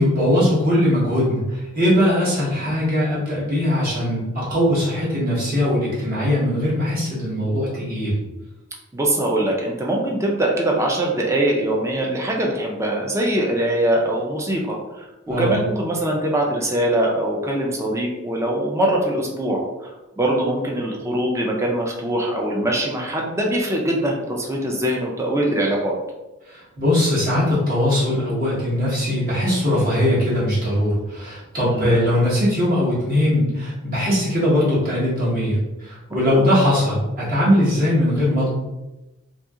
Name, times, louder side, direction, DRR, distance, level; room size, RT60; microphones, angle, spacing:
voice 1, 0.0-8.2 15.3-15.5 26.5-38.5, left 1 dB, 45° right, -8 dB, 1.3 m, -20 dB
voice 2, 8.9-19.9 20.2-26.0 31.6-32.0 36.3-36.4, right 1 dB, 15° right, -1 dB, 0.4 m, -22 dB
2.7 x 2.7 x 2.4 m, 1.0 s
head